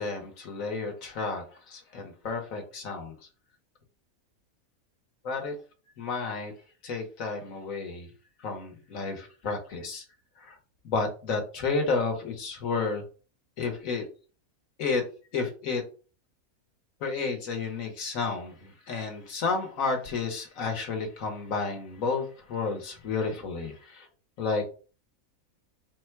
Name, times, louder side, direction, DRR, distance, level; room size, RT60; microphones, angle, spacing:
voice 1, 0.0-3.2 5.2-5.5 6.0-6.5 6.8-8.1 8.4-10.0 10.4-10.6 10.8-13.0 13.6-14.0 14.8-15.0 15.3-15.8 17.0-24.1 24.4-24.7, left 4 dB, 70° left, 3 dB, 1.4 m, -31 dB
4.2 x 2.2 x 4.5 m, 0.37 s
omnidirectional pair, 1.5 m